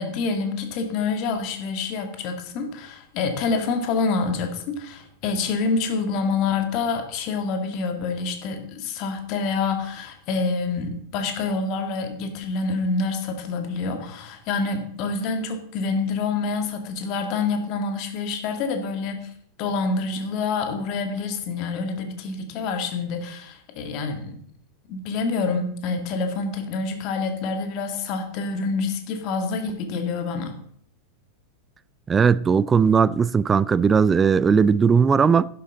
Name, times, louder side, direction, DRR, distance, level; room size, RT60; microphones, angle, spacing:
voice 1, 0.0-19.2 19.6-24.4 24.9-30.5, left 4 dB, 40° left, 2.0 m, -27 dB
voice 2, 32.1-35.5, right 6 dB, 20° right, 0.4 m, -18 dB
11.5 x 11.0 x 3.9 m
figure-of-eight pair, 90°, 0 cm